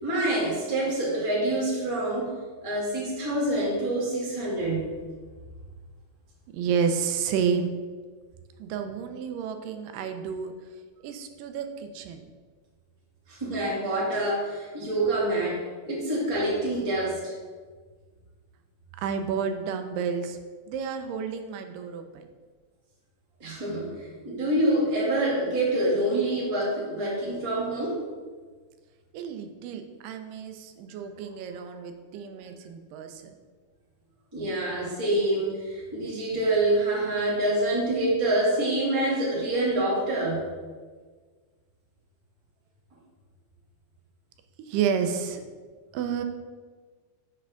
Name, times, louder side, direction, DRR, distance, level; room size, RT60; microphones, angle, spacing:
voice 1, 0.0-2.3 2.6-4.9 13.3-17.3 23.4-28.0 34.3-40.5, right 1 dB, 15° right, -6 dB, 1.2 m, -26 dB
voice 2, 6.5-7.7 8.6-10.5 11.0-12.2 19.0-20.4 20.7-22.3 29.1-33.3 44.7-45.4 45.9-46.2, right 6 dB, 90° right, 7 dB, 2.3 m, -30 dB
7.3 x 3.3 x 6.2 m, 1.5 s
omnidirectional pair, 3.7 m